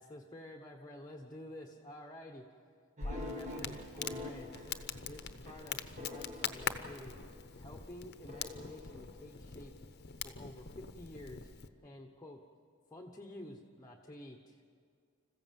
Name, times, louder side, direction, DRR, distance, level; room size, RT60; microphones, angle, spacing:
voice 1, 0.0-2.4 3.0-4.7 5.0-7.2 7.6-9.7 10.2-11.5 11.8-12.4 12.9-14.6, left 1 dB, 20° left, 1 dB, 1.1 m, -50 dB
Crackle, 3.0-11.7, left 6 dB, 55° left, 0.9 m, -43 dB
sound 1, 3.0-7.5 8.3-9.8, left 2 dB, 35° right, 1.8 m, -47 dB
26.5 x 15.0 x 7.7 m, 2.3 s
head